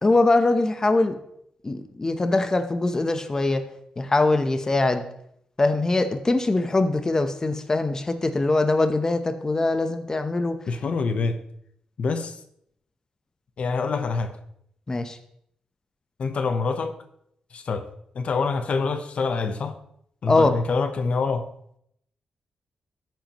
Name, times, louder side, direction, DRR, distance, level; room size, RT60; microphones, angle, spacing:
voice 1, 0.0-1.1 1.6-3.6 4.0-5.0 5.6-10.6 14.9-15.2 20.3-20.5, left 2 dB, 25° left, 0.9 m, -22 dB
voice 2, 10.7-11.4 12.0-12.4 13.6-14.3 16.2-17.0 17.5-17.9 18.1-19.8 20.2-21.5, left 4 dB, 60° left, 1.0 m, -26 dB
13.0 x 9.2 x 3.1 m
cardioid pair, 85°, 2 cm